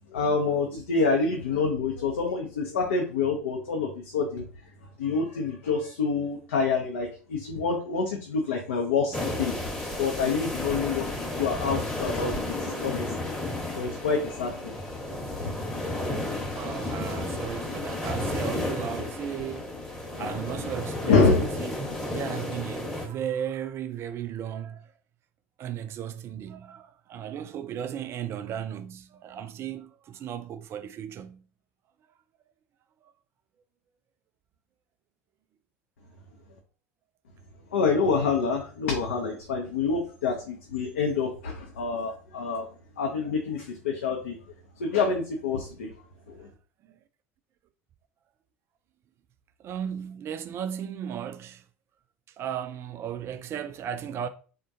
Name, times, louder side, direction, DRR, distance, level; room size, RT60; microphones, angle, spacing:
voice 1, 0.1-4.5 5.0-9.5 10.0-11.1 11.4-13.3 13.7-14.8 20.2-20.3 21.1-21.5 22.3-22.4 37.7-42.7 43.0-44.4 44.8-45.9 46.3-46.5, left 4 dB, 75° left, 0.5 m, -27 dB
sound 1, 9.1-23.1, left 1 dB, 5° left, 0.9 m, -33 dB
voice 2, 16.4-19.7 20.1-21.7 22.0-24.9 25.6-31.4 46.9-47.0 49.6-51.6 52.4-54.3, right 9 dB, 35° right, 0.3 m, -35 dB
3.6 x 2.2 x 2.6 m
figure-of-eight pair, 70°, 7 cm